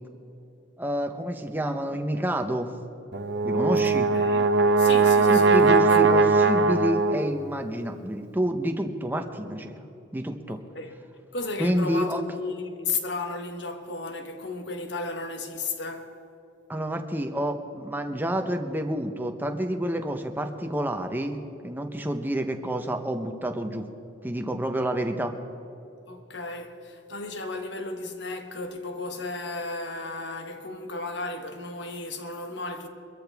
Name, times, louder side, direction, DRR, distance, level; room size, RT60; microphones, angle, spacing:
voice 1, 0.8-2.7 3.4-4.1 5.3-9.8 10.1-10.6 11.6-12.2 16.7-21.4 21.6-23.9 24.2-25.4, equal, 10° right, 0.8 m, -29 dB
Brass instrument, 3.1-7.4, right 4 dB, 60° right, 0.8 m, -20 dB
voice 2, 3.8-4.5 4.8-5.8 10.5-10.9 11.3-16.1 26.1-32.9, left 3 dB, 60° left, 1.3 m, -34 dB
23.5 x 14.0 x 3.5 m
head